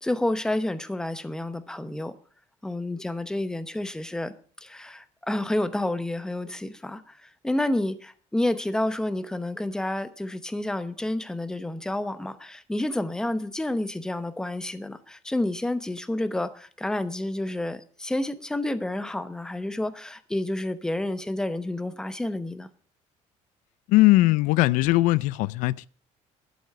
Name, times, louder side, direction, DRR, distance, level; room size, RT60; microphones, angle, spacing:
voice 1, 0.0-2.2 2.6-4.3 4.6-22.7, left 1 dB, 5° left, 0.8 m, -29 dB
voice 2, 23.9-25.9, left 19 dB, 90° left, 0.4 m, -20 dB
11.5 x 8.0 x 6.7 m
cardioid pair, 155°, 13 cm